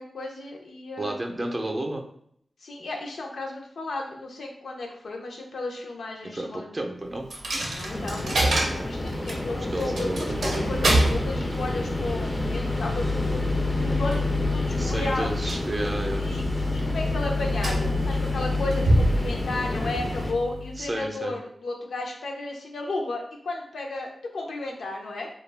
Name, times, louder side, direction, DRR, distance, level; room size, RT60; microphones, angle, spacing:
voice 1, 0.0-1.2 2.6-6.7 7.7-13.4 13.8-14.2 14.5-15.5 16.2-25.3, left 2 dB, 85° left, 1 dB, 0.5 m, -34 dB
voice 2, 1.0-2.0 6.3-7.3 9.5-10.5 14.8-16.3 18.5-18.6 20.8-21.3, right 1 dB, 35° right, 2 dB, 0.5 m, -31 dB
Coin (dropping), 7.3-21.0, left 1 dB, 85° right, 0.6 m, -27 dB
sound 1, 7.9-20.3, left 1 dB, 25° left, 0.4 m, -31 dB
2.2 x 2.0 x 3.2 m, 0.67 s
cardioid pair, 60°, 0 cm